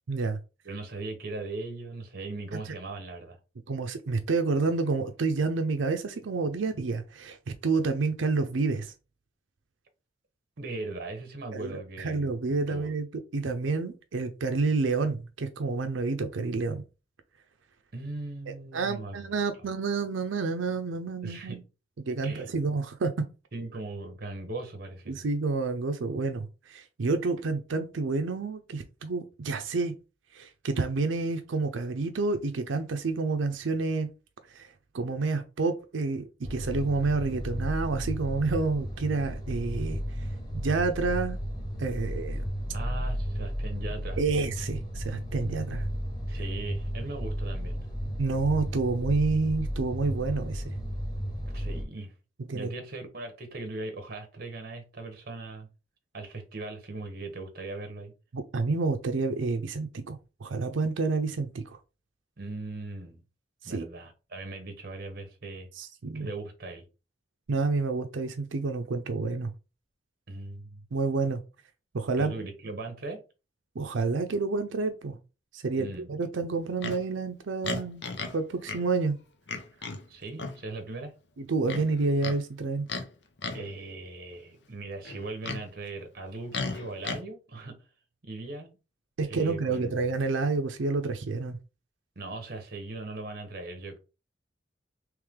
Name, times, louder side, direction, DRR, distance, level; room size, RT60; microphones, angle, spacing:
voice 1, 0.1-0.4 2.7-2.8 3.7-7.4 7.6-8.9 11.5-13.1 13.3-16.8 18.5-21.6 22.0-23.2 25.1-29.9 30.3-34.1 34.5-40.3 40.5-41.4 41.8-42.4 44.2-45.9 48.2-50.7 52.4-52.7 58.3-61.8 63.6-63.9 65.8-66.3 67.5-69.5 70.9-71.4 71.9-72.3 73.8-75.2 75.5-78.0 78.3-79.1 81.4-82.9 89.2-91.6, right 3 dB, 85° right, 0.5 m, -29 dB
voice 2, 0.6-3.4 10.6-12.3 12.7-12.9 17.9-19.3 21.2-21.6 22.2-22.5 23.5-25.2 42.7-44.2 46.3-47.9 51.5-52.1 52.5-55.7 56.1-58.1 62.4-63.2 63.6-65.7 66.1-66.8 70.3-70.9 72.2-73.2 75.8-76.1 80.1-81.1 83.5-87.8 88.2-88.8 89.2-90.1 92.2-94.0, right 2 dB, 50° right, 0.9 m, -39 dB
sound 1, 36.4-51.8, equal, 20° left, 1.2 m, -33 dB
Livestock farm animals working animals, 76.8-77.0 77.6-78.4 78.7-78.8 79.5-80.0 80.4-80.6 81.7-82.4 82.9-83.1 83.4-83.7 85.1-85.6 86.5-87.2, left 4 dB, 65° left, 0.7 m, -34 dB
3.3 x 3.1 x 3.5 m
head